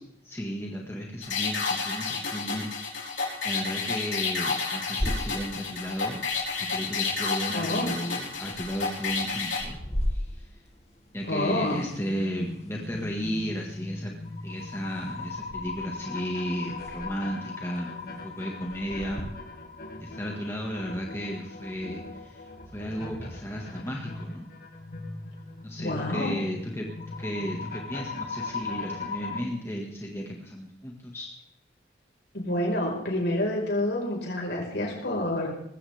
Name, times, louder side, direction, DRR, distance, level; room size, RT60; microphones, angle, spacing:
voice 1, 0.2-6.3 6.6-10.6 11.1-14.1 14.4-19.3 20.0-22.5 22.7-24.5 25.6-26.9 27.2-31.3, equal, 15° left, -1 dB, 1.8 m, -34 dB
sound 1, 1.2-9.6, left 4 dB, 90° left, 4.1 m, -30 dB
sound 2, 5.0-19.2, equal, 35° left, 2.4 m, -39 dB
voice 2, 7.5-7.9 11.3-11.8 25.8-26.4 32.3-35.5, left 1 dB, 70° left, -1 dB, 5.0 m, -28 dB
sound 3, 11.8-29.4, left 3 dB, 55° left, 2.4 m, -39 dB
20.0 x 16.0 x 3.6 m, 0.77 s
head